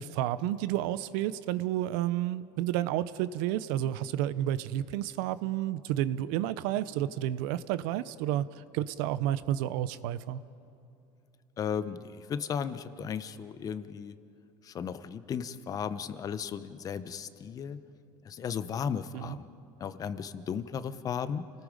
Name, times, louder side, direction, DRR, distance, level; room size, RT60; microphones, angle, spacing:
voice 1, 0.0-10.4 19.1-19.4, right 12 dB, 80° right, 15 dB, 0.7 m, -31 dB
voice 2, 11.6-14.1 14.6-17.8 18.2-19.5 19.8-21.4, left 7 dB, 35° left, 13 dB, 0.8 m, -35 dB
29.5 x 19.0 x 5.2 m, 2.8 s
cardioid pair, 130°, 11 cm